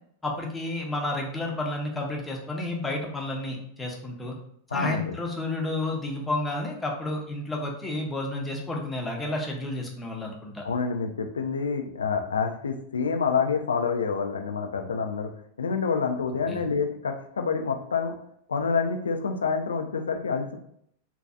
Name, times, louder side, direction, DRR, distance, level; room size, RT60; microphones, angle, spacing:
voice 1, 0.2-4.4 4.7-10.6 16.5-16.6, left 2 dB, 10° left, 0 dB, 0.6 m, -31 dB
voice 2, 4.7-5.1 10.6-15.3 15.6-18.1 18.5-20.6, left 5 dB, 70° left, 4 dB, 0.3 m, -27 dB
2.6 x 2.3 x 2.3 m, 0.69 s
figure-of-eight pair, 90°, 0 cm